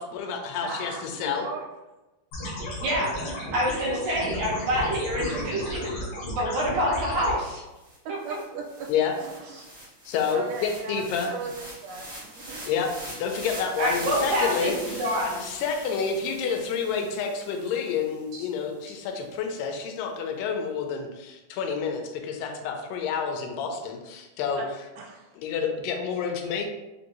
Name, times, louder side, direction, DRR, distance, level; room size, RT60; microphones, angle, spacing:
voice 1, 0.0-1.5 8.9-9.1 10.1-11.3 12.7-15.0 15.4-24.6 25.4-26.7, left 6 dB, 90° left, 4 dB, 2.2 m, -29 dB
voice 2, 0.6-1.6 6.7-7.0 8.0-8.9 9.2-9.7 10.3-12.7 24.6-24.7 25.0-25.4, right 4 dB, 85° right, 0 dB, 2.3 m, -38 dB
sound 1, 2.3-7.3, left 1 dB, 65° left, 1.4 m, -34 dB
voice 3, 3.5-5.9 6.3-7.6 13.8-15.4 18.3-18.4, equal, 70° right, -4 dB, 2.0 m, -26 dB
sound 2, 7.5-7.6 7.8-18.2, right 1 dB, 50° right, 0.8 m, -42 dB
5.2 x 2.6 x 2.9 m, 1.0 s
omnidirectional pair, 3.8 m